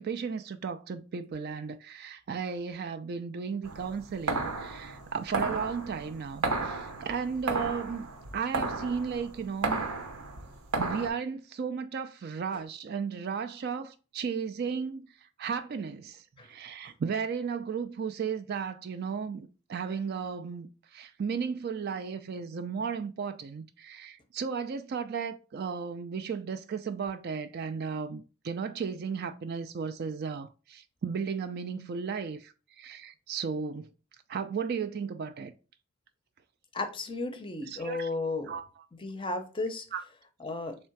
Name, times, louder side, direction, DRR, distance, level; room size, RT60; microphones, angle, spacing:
voice 1, 0.0-9.8 10.8-15.1 15.4-20.7 20.9-33.9 34.3-35.5 37.7-38.1 38.4-38.6 39.9-40.0, right 6 dB, 45° right, 0.3 m, -35 dB
sound 1, 3.6-11.1, right 3 dB, 80° right, 0.9 m, -33 dB
voice 2, 36.7-38.5 39.0-39.9 40.4-40.8, left 2 dB, 20° left, 0.6 m, -34 dB
3.6 x 3.2 x 4.5 m
head